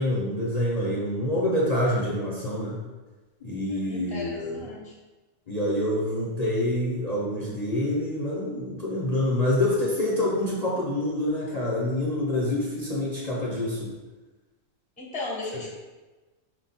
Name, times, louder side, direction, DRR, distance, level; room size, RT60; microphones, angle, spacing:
voice 1, 0.0-2.8 3.4-4.7 5.5-13.9, left 1 dB, 40° left, -6 dB, 0.7 m, -26 dB
voice 2, 3.7-4.9 15.0-15.7, left 2 dB, 10° left, -4 dB, 0.6 m, -36 dB
4.7 x 2.3 x 4.1 m, 1.2 s
omnidirectional pair, 1.3 m